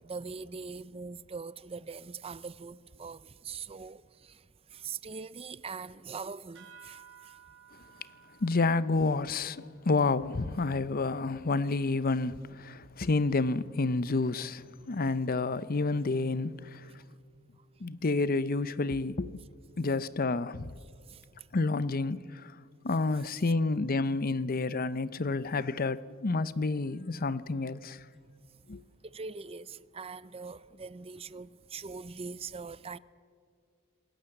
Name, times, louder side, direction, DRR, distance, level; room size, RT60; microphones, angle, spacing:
voice 1, 0.0-4.4 4.7-7.3 21.1-21.2 29.0-33.0, right 5 dB, 25° right, 0.6 m, -42 dB
sound 1, 6.5-11.5, right 6 dB, 60° right, 5.6 m, -57 dB
voice 2, 8.4-16.8 17.8-19.3 19.8-20.6 21.5-22.5 22.8-28.0 28.7-28.8, left 3 dB, 40° left, 0.7 m, -29 dB
26.5 x 20.5 x 7.9 m
head